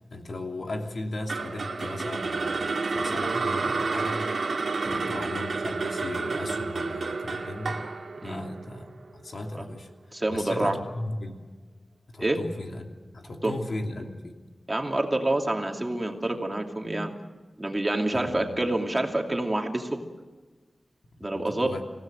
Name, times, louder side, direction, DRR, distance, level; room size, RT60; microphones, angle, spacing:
voice 1, 0.1-4.2 4.8-7.8 8.2-8.9 9.1-9.9 10.3-11.3 12.1-12.9 13.1-14.4 18.1-18.6 21.2-21.8, left 2 dB, 65° left, 2 dB, 2.9 m, -36 dB
sound 1, 1.3-9.5, right 4 dB, 80° right, 2.2 m, -30 dB
voice 2, 10.1-10.8 12.2-12.4 13.4-13.5 14.7-17.1 17.6-20.0 21.2-21.7, right 1 dB, 20° right, 2 dB, 2.7 m, -27 dB
27.5 x 16.5 x 7.8 m, 1.3 s
wide cardioid pair, 100°, 0 cm